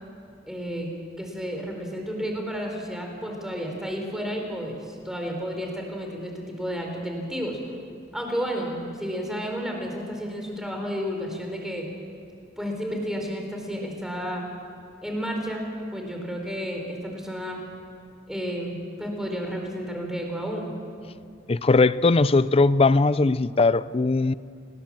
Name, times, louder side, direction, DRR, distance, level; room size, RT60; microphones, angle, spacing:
voice 1, 0.4-0.9 1.2-7.6 8.1-11.9 12.6-14.4 15.0-15.6 15.9-17.6 18.3-20.7, equal, 5° right, 4.2 m, -31 dB
voice 2, 21.5-24.3, left 3 dB, 30° left, 0.5 m, -19 dB
27.0 x 19.5 x 7.5 m
head